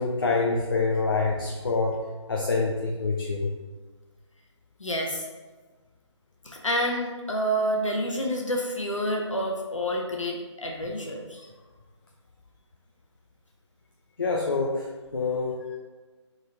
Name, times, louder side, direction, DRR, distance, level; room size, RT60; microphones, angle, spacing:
voice 1, 0.0-2.0 2.3-3.5 14.2-15.8, left 3 dB, 50° left, -1 dB, 0.6 m, -26 dB
voice 2, 4.8-5.3 6.4-11.4, equal, 90° left, 0 dB, 1.1 m, -28 dB
3.9 x 3.8 x 3.3 m, 1.3 s
figure-of-eight pair, 165°, 16 cm